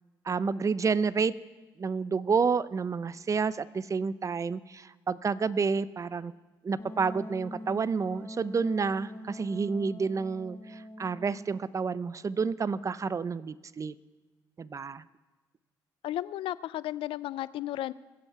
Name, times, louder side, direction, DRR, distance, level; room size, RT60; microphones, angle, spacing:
voice 1, 0.3-1.3 1.8-6.3 6.6-13.9 14.6-15.0, right 5 dB, 35° right, 17 dB, 0.5 m, -29 dB
Wind instrument woodwind instrument, 6.8-11.6, equal, 25° left, 1.4 m, -44 dB
voice 2, 16.0-17.9, left 14 dB, 75° left, 18 dB, 0.4 m, -34 dB
22.5 x 7.9 x 4.7 m, 1.2 s
supercardioid pair, 65°, 9 cm